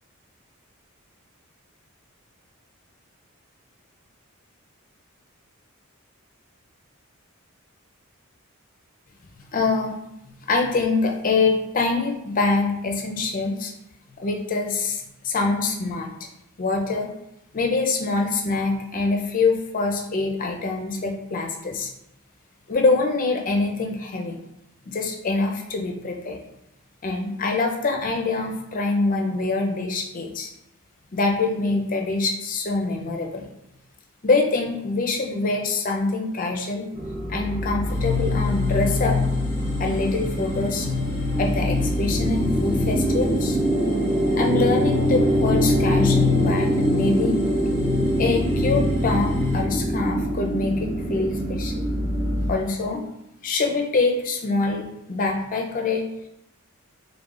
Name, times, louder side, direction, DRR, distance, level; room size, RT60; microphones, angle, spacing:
voice 1, 9.5-9.9 10.5-13.7 14.2-16.3 16.6-17.1 17.5-21.9 22.7-24.4 24.9-26.4 27.0-30.5 31.1-33.4 34.2-36.9 37.3-39.2 39.8-40.9 41.4-43.6 44.3-47.4 48.2-51.8 52.5-53.0 53.4-56.0, left 3 dB, 40° left, 2 dB, 0.5 m, -24 dB
sound 1, 36.9-52.5, right 1 dB, 25° right, 0.6 m, -24 dB
sound 2, 37.9-49.6, left 6 dB, 10° left, 0.9 m, -28 dB
3.8 x 3.4 x 2.4 m, 0.84 s
head